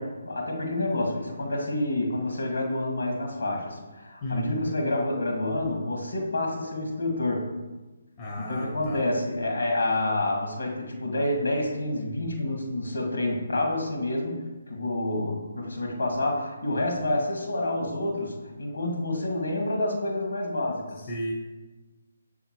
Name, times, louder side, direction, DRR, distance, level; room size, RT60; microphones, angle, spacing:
voice 1, 0.0-7.5 8.4-14.4 14.7-21.0, left 1 dB, 70° left, 1 dB, 1.7 m, -28 dB
voice 2, 4.2-4.6 8.2-9.0 21.1-21.3, equal, 25° left, -2 dB, 0.8 m, -33 dB
7.0 x 3.5 x 4.6 m, 1.2 s
figure-of-eight pair, 140°, 0 cm